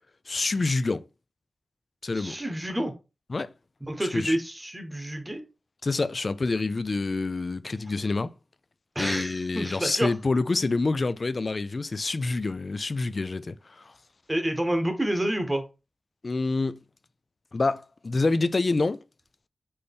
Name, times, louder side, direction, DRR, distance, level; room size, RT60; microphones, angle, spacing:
voice 1, 0.3-1.0 2.0-2.4 3.3-3.5 4.0-4.3 5.8-8.3 9.0-13.9 16.2-16.8 17.5-19.0, left 3 dB, 40° left, 0.3 m, -27 dB
voice 2, 2.1-2.9 3.9-5.4 8.9-10.1 14.3-15.6, right 1 dB, 15° right, 1.0 m, -28 dB
4.2 x 3.3 x 3.4 m
wide cardioid pair, 125°, 0 cm